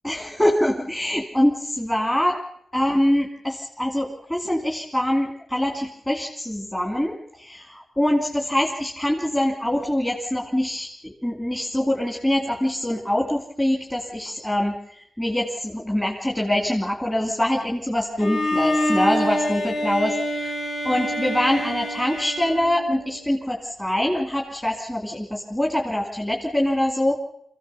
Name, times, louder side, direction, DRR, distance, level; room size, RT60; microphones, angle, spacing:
voice 1, 0.0-2.4 2.7-20.1 20.4-20.5 20.8-27.2, left 1 dB, 10° left, 1 dB, 2.5 m, -24 dB
Bowed string instrument, 18.2-23.2, equal, 80° left, 4.6 m, -26 dB
26.0 x 16.0 x 6.9 m, 0.73 s
wide cardioid pair, 125°, 0 cm